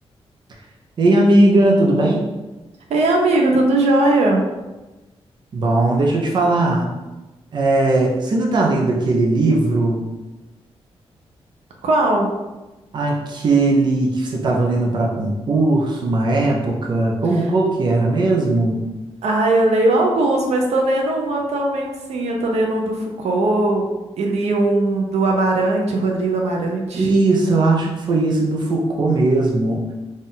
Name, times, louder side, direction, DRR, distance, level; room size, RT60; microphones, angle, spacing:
voice 1, 1.0-2.2 5.5-6.9 7.5-10.0 12.9-18.8 26.9-29.8, right 2 dB, 45° right, -1 dB, 0.6 m, -18 dB
voice 2, 2.9-4.5 11.8-12.3 19.2-23.8 24.2-27.1, right 2 dB, 90° right, 1 dB, 0.7 m, -19 dB
4.2 x 2.5 x 3.7 m, 1.1 s
wide cardioid pair, 175°, 11 cm